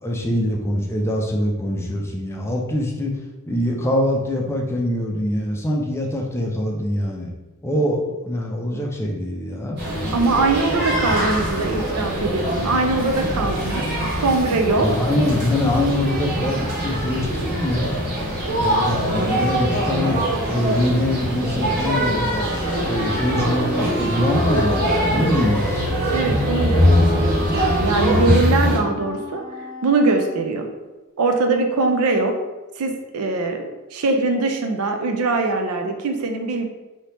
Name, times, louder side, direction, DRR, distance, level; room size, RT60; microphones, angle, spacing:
voice 1, 0.0-3.2 3.5-7.3 7.6-9.8 14.8-18.0 18.6-20.2 20.5-22.4 22.8-26.2, left 1 dB, 10° left, -1 dB, 0.4 m, -23 dB
sound 1, 9.8-28.8, equal, 50° right, 1.4 m, -22 dB
voice 2, 10.1-13.8 14.2-14.9 26.1-26.9 27.2-29.4 29.8-30.7 31.2-32.4 32.8-33.6 33.9-36.7, right 3 dB, 75° right, 4 dB, 0.5 m, -22 dB
Wind instrument woodwind instrument, 22.3-30.4, equal, 55° left, 0.7 m, -32 dB
2.9 x 2.8 x 3.3 m, 1.1 s
head